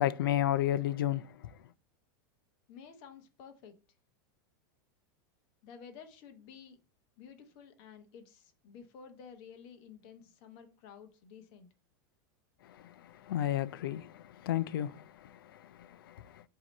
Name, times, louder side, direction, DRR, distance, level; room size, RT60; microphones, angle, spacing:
voice 1, 0.0-1.3 12.7-16.4, left 12 dB, 90° left, 0.5 m, -33 dB
voice 2, 2.7-3.8 5.6-6.8 7.2-11.7, left 7 dB, 35° left, 1.0 m, -52 dB
7.6 x 2.9 x 5.3 m
supercardioid pair, 175°, 11 cm